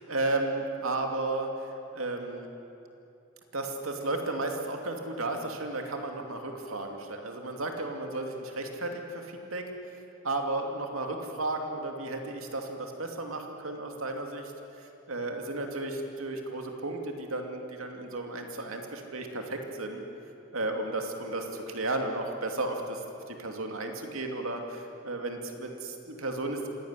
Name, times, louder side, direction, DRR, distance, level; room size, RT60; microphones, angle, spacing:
voice 1, 0.0-2.5 3.5-9.7 10.2-14.5 14.8-20.0 20.5-26.7, right 2 dB, 70° right, 3 dB, 2.7 m, -34 dB
26.0 x 17.5 x 9.8 m, 2.8 s
head